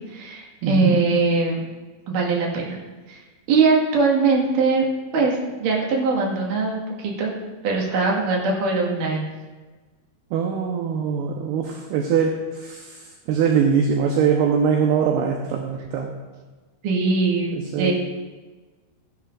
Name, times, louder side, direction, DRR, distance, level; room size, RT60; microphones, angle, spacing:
voice 1, 0.0-1.6 2.1-2.7 3.1-3.2 3.5-4.9 5.1-7.3 7.6-9.2 16.8-17.9, right 4 dB, 55° right, -2 dB, 2.9 m, -21 dB
voice 2, 0.6-1.0 10.3-13.0 13.3-16.1 17.6-17.9, right 6 dB, 75° right, 2 dB, 2.6 m, -22 dB
15.5 x 11.5 x 2.5 m, 1.3 s
omnidirectional pair, 5.1 m